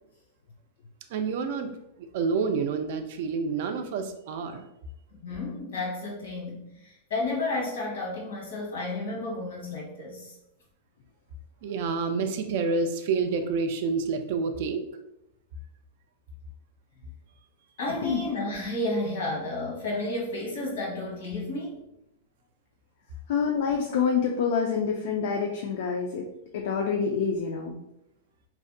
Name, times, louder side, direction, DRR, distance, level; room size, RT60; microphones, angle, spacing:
voice 1, 1.1-4.7 11.6-14.8, right 4 dB, 60° right, 7 dB, 0.3 m, -28 dB
voice 2, 5.2-10.3 17.0-17.1 17.8-21.8, left 2 dB, 85° left, -3 dB, 1.1 m, -32 dB
voice 3, 23.3-26.3 26.5-27.8, left 6 dB, 65° left, 1 dB, 0.3 m, -27 dB
2.6 x 2.1 x 2.5 m, 0.85 s
supercardioid pair, 140°, 0 cm